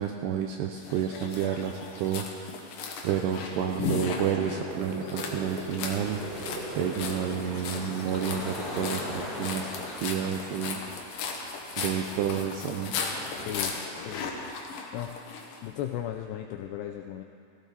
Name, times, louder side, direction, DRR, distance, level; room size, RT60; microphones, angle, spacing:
voice 1, 0.0-2.5 3.0-6.2 6.7-9.7 10.0-10.8 11.8-12.9, right 9 dB, 85° right, 4 dB, 2.4 m, -30 dB
sound 1, 0.8-15.6, left 5 dB, 65° left, 2.2 m, -37 dB
sound 2, 2.6-7.5, right 1 dB, 60° right, 1.6 m, -39 dB
sound 3, 5.4-13.6, left 2 dB, 40° left, 3.9 m, -41 dB
voice 2, 13.4-14.3 14.9-15.2 15.6-17.2, left 11 dB, 85° left, 4 dB, 2.4 m, -36 dB
16.5 x 16.0 x 4.1 m, 2.4 s
omnidirectional pair, 5.4 m